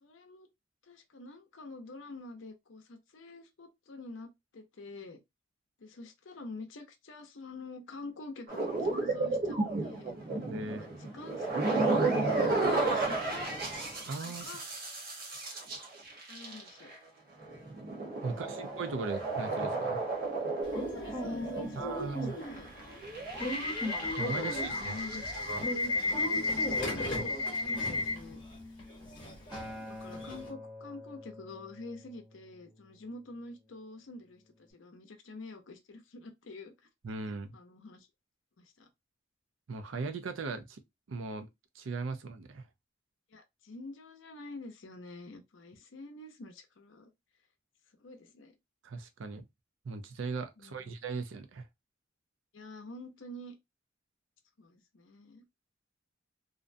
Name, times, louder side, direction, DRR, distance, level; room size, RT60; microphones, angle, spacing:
voice 1, 0.0-0.5 0.9-5.2 5.8-10.1 10.6-13.5 14.2-14.6 16.3-16.9 18.2-18.7 20.9-22.7 24.4-25.2 26.0-26.4 26.8-28.4 29.6-36.7 37.5-38.1 38.6-38.9 43.3-47.1 48.0-48.6 50.6-50.8 52.5-53.5 54.6-55.4, left 2 dB, 75° left, 0.6 m, -47 dB
sound 1, 8.5-16.9 17.4-26.1 26.3-26.8, right 3 dB, 50° right, 0.9 m, -33 dB
voice 2, 10.5-10.9 14.0-14.5 18.2-20.0 21.8-22.3 24.2-25.0 25.3-25.6 37.0-37.5 39.7-40.8 41.1-41.5 41.7-42.6 48.8-49.4 49.8-51.6, right 4 dB, 75° right, 0.5 m, -38 dB
Subway metro underground / Alarm, 20.7-30.5, left 2 dB, 25° left, 0.9 m, -34 dB
Acoustic guitar, 29.5-33.8 34.7-34.8, left 1 dB, 5° right, 0.7 m, -48 dB
2.5 x 2.0 x 2.5 m
head